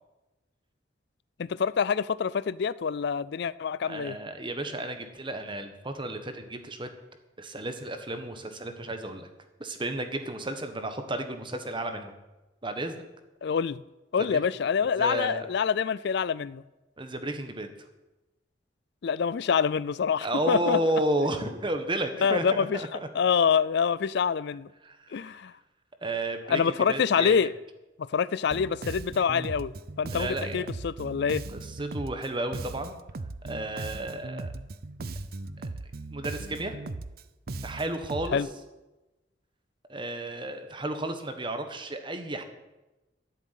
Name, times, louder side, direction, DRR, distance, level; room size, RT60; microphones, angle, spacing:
voice 1, 1.4-4.2 13.4-13.8 14.1-16.6 19.0-20.8 22.2-22.8 23.1-24.7 25.1-25.5 26.5-27.5 28.0-29.7 30.0-31.4 38.3-38.5, left 6 dB, 65° left, 0.4 m, -26 dB
voice 2, 3.8-6.9 7.4-9.3 9.6-12.1 12.6-13.1 14.2-14.4 15.0-15.4 17.0-17.7 20.2-23.1 24.8-25.4 26.0-27.5 30.1-30.7 31.5-32.9 33.4-34.5 35.6-35.7 36.1-36.7 37.6-38.4 39.9-42.4, right 1 dB, 25° right, 1.4 m, -32 dB
Bass guitar, 28.5-38.4, right 2 dB, 55° right, 0.6 m, -38 dB
13.0 x 7.4 x 9.3 m
head